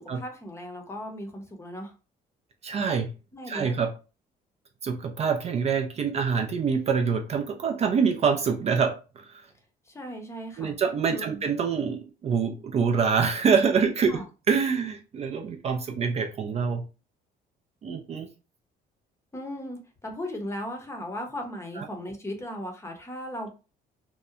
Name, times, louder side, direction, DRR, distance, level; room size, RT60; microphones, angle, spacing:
voice 1, 0.0-1.9 3.3-3.7 9.9-10.7 11.1-11.4 14.1-14.3 19.3-23.5, equal, 15° left, 4 dB, 0.7 m, -37 dB
voice 2, 2.6-3.1 3.5-3.9 4.8-9.4 10.6-14.2 14.5-16.8 17.8-18.3 21.8-21.9, right 6 dB, 40° right, 4 dB, 0.4 m, -25 dB
2.7 x 2.1 x 2.4 m, 0.32 s
cardioid pair, 110°, 17 cm